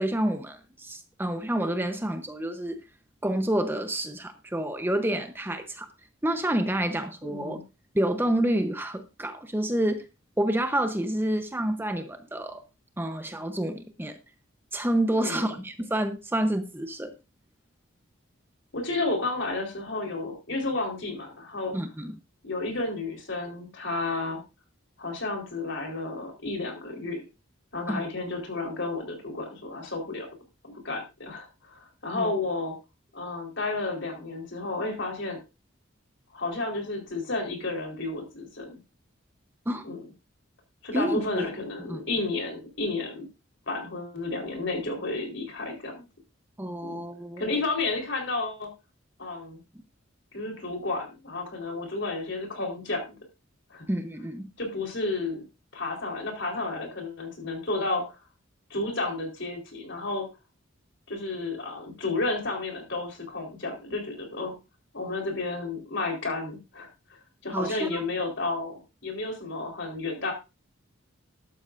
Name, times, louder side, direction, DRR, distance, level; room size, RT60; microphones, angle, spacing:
voice 1, 0.0-2.8 3.2-5.9 6.2-7.6 7.9-10.0 10.4-12.6 13.0-14.2 14.7-17.1 21.7-22.1 27.9-28.0 32.1-32.3 39.7-39.8 40.9-41.5 41.8-42.0 46.6-47.6 53.9-54.5 67.5-68.1, right 1 dB, 10° right, 7 dB, 0.8 m, -28 dB
voice 2, 7.2-7.6 15.1-15.5 18.7-21.8 22.4-24.4 25.0-27.2 27.7-30.3 30.8-32.8 33.1-35.4 36.3-38.8 39.8-40.0 40.8-43.3 43.7-46.0 46.8-47.0 47.4-48.7 49.2-49.6 50.3-53.2 53.7-53.8 54.6-55.4 55.7-58.0 58.7-60.3 61.1-64.5 64.9-70.3, left 3 dB, 60° left, 3 dB, 4.1 m, -32 dB
13.5 x 12.0 x 2.6 m, 0.27 s
head